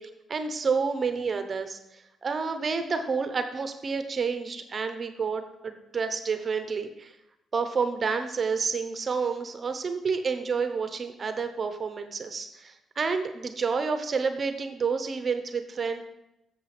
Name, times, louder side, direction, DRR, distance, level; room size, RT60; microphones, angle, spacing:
voice 1, 0.0-7.1 7.5-16.0, right 5 dB, 45° right, 8 dB, 0.8 m, -29 dB
7.5 x 7.3 x 4.2 m, 0.85 s
cardioid pair, 90°, 0 cm